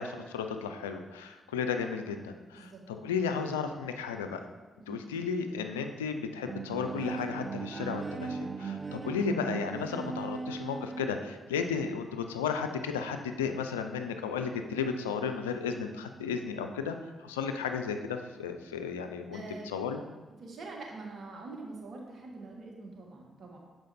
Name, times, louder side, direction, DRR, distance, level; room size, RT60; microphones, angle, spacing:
voice 1, 0.0-4.4 4.9-17.0 17.2-20.0, left 6 dB, 90° left, 6 dB, 0.3 m, -34 dB
voice 2, 4.8-5.1 19.3-19.7 20.4-23.6, right 3 dB, 60° right, -1 dB, 1.4 m, -44 dB
Bowed string instrument, 6.4-11.3, right 4 dB, 40° right, 0.6 m, -38 dB
6.4 x 4.6 x 4.1 m, 1.3 s
hypercardioid pair, 40°, 0 cm